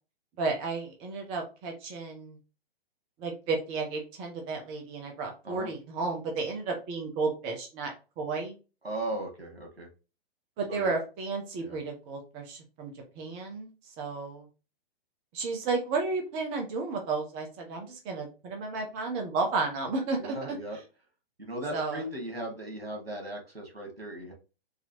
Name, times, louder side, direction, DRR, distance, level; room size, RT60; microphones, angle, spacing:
voice 1, 0.4-2.4 3.2-8.5 10.6-14.5 15.3-20.6 21.7-22.0, right 3 dB, 20° right, 3 dB, 0.6 m, -33 dB
voice 2, 8.8-9.9 10.7-10.9 11.6-11.8 20.2-20.8 21.4-24.3, right 1 dB, 85° right, 1 dB, 1.8 m, -37 dB
3.9 x 2.8 x 2.8 m, 0.32 s
figure-of-eight pair, 120°, 30 cm